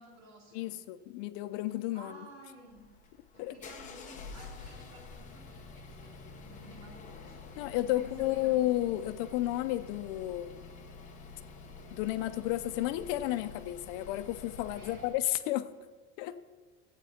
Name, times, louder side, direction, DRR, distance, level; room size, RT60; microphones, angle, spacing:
voice 1, 0.0-0.8 1.9-2.8 3.3-8.6 14.7-15.1, right 1 dB, 55° right, -2 dB, 3.1 m, -53 dB
voice 2, 0.5-2.3 3.4-3.6 7.6-10.7 11.9-15.7 16.2-16.4, left 15 dB, 70° left, 12 dB, 0.6 m, -32 dB
sound 1, 2.7-15.2, left 4 dB, 25° left, 0.9 m, -48 dB
14.5 x 9.0 x 4.3 m, 1.4 s
cardioid pair, 180°, 31 cm